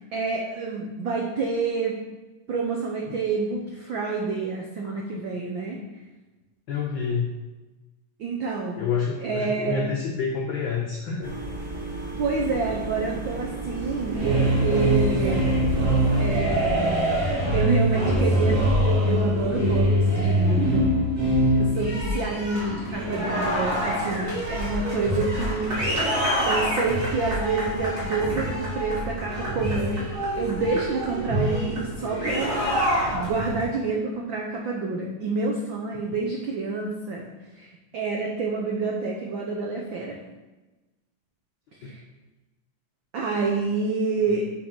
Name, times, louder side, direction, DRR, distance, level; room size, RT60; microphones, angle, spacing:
voice 1, 0.1-2.0 2.5-5.8 8.2-8.8 9.2-9.8 12.2-15.8 16.2-17.2 17.5-21.0 21.5-26.1 26.4-30.0 30.3-32.6 33.1-37.3 37.5-40.2 41.8-42.0 43.1-44.5, right 4 dB, 80° right, -1 dB, 1.1 m, -28 dB
voice 2, 6.7-7.3 8.8-11.3 21.7-21.9, left 5 dB, 80° left, -1 dB, 1.0 m, -28 dB
sound 1, 11.2-16.4, right 2 dB, 15° right, 1.8 m, -33 dB
sound 2, 14.0-33.6, equal, 30° right, 3.3 m, -24 dB
6.3 x 5.2 x 6.0 m, 1.1 s
omnidirectional pair, 3.4 m